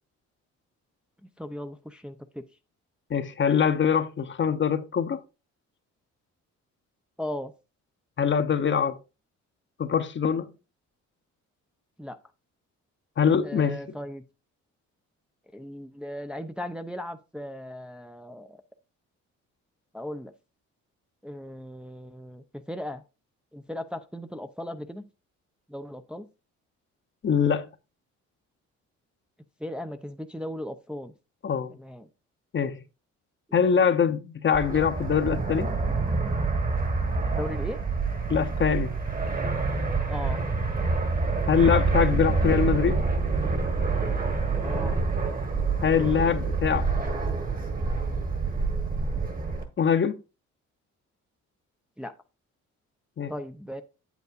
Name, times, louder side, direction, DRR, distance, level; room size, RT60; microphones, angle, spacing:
voice 1, 1.4-2.4 7.2-7.5 12.0-12.2 13.4-14.2 15.5-18.6 19.9-20.3 21.2-23.0 23.5-25.0 25.7-26.2 29.6-31.1 31.7-32.1 37.3-37.8 40.1-40.4 44.6-45.0 52.0-52.1 53.3-53.8, left 1 dB, 5° right, 0.6 m, -37 dB
voice 2, 3.1-5.2 8.2-9.0 9.8-10.5 13.2-13.8 27.2-27.7 31.4-31.7 32.5-32.8 33.5-35.7 38.3-38.9 41.5-43.0 45.8-46.9 49.8-50.2 53.2-53.3, left 7 dB, 40° left, 0.8 m, -23 dB
Fixed-wing aircraft airplane, 34.5-49.6, right 4 dB, 30° right, 1.5 m, -27 dB
8.1 x 8.1 x 2.5 m
cardioid pair, 90°, 30 cm